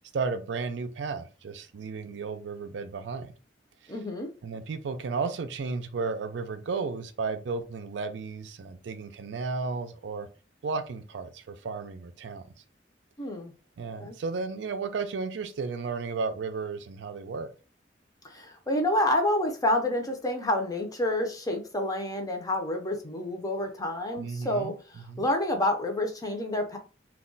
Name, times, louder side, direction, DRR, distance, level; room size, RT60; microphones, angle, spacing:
voice 1, 0.1-3.4 3.8-3.9 4.4-10.3 10.6-12.5 13.8-17.5 24.2-24.8 25.1-25.3, right 4 dB, 70° right, 0.4 m, -33 dB
voice 2, 3.9-4.3 13.2-13.5 14.0-14.2 18.2-26.8, left 1 dB, 20° left, 0.6 m, -28 dB
2.3 x 2.1 x 3.8 m
head